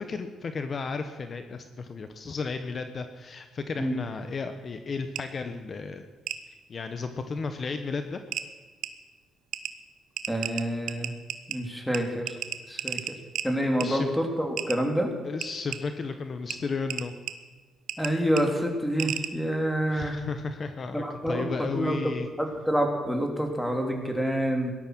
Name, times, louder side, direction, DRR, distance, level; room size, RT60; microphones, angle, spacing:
voice 1, 0.0-6.1 6.5-8.2 13.8-14.1 15.2-17.1 19.9-22.3, left 4 dB, 45° left, 8 dB, 1.1 m, -34 dB
sound 1, 5.2-5.3 6.3-6.4 7.7-7.8 8.3-8.5 8.8-8.9 9.5-9.7 10.2-11.6 11.9-12.0 12.3-13.5 13.8-13.9 14.6-14.8 15.4-15.8 16.5-16.6 16.9-17.3 17.9-18.1 18.4-18.5 19.0-19.3, right 11 dB, 80° right, 1.1 m, -32 dB
voice 2, 10.3-11.1 11.5-12.3 12.7-13.1 13.4-15.1 18.0-20.2 20.9-21.4 21.7-22.0 22.4-24.7, equal, 5° left, 3 dB, 3.3 m, -27 dB
18.0 x 12.5 x 6.2 m, 1.4 s
cardioid pair, 90°, 0 cm